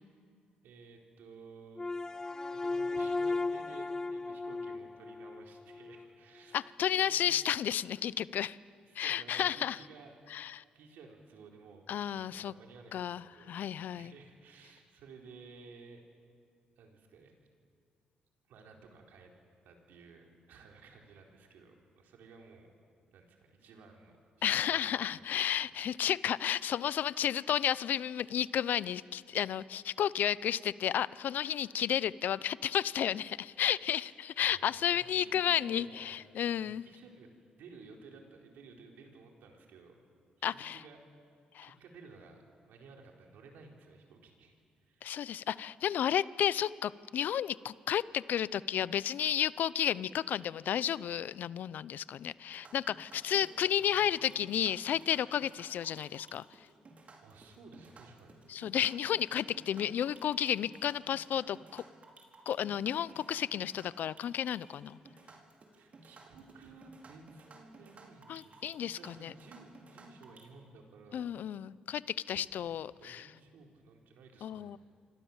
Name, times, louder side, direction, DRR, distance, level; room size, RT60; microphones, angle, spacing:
voice 1, 0.6-2.0 2.5-7.3 8.8-10.1 10.7-13.5 14.0-16.0 16.8-17.4 18.5-19.3 19.6-22.7 23.1-24.9 25.2-25.7 33.9-34.1 34.4-36.2 36.6-37.3 37.6-40.1 40.4-41.0 41.6-42.4 42.7-44.5 44.8-45.1 53.3-54.4 57.2-58.4 65.7-71.3 72.6-74.8, right 4 dB, 75° right, 1 dB, 4.2 m, -55 dB
sound 1, 1.8-6.1, left 3 dB, 20° left, 0.7 m, -36 dB
voice 2, 6.5-8.6 9.0-9.8 10.3-10.6 11.9-12.5 12.9-14.1 24.4-36.8 40.4-40.8 41.5-41.7 45.0-56.4 58.5-61.8 62.5-65.0 68.3-69.3 71.1-73.3 74.4-74.8, left 10 dB, 65° left, 19 dB, 0.6 m, -32 dB
sound 2, 52.5-70.4, right 3 dB, 45° right, 4.5 m, -56 dB
28.0 x 25.5 x 7.3 m, 2.2 s
supercardioid pair, 70°, 3 cm